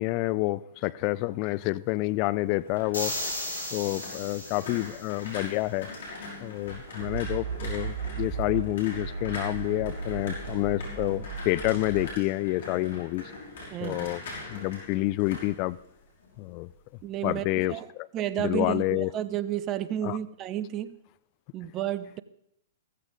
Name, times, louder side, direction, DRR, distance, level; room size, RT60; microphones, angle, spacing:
voice 1, 0.0-3.3 3.7-5.9 6.4-13.3 13.8-14.2 14.5-15.8 16.4-16.7 17.2-18.1 18.4-19.1 20.0-20.2, left 19 dB, 40° left, 19 dB, 0.4 m, -28 dB
sound 1, 2.4-16.4 16.7-17.1, left 2 dB, 65° left, 5.8 m, -42 dB
sound 2, 2.9-5.2, left 1 dB, 85° left, 6.4 m, -35 dB
sound 3, 7.0-8.7 8.9-12.1, right 5 dB, 60° right, 4.1 m, -35 dB
voice 2, 13.7-14.1 17.0-17.9 18.1-21.0 21.5-22.2, right 11 dB, 30° right, 15 dB, 0.8 m, -31 dB
15.5 x 15.0 x 3.9 m, 0.77 s
figure-of-eight pair, 115°, 0 cm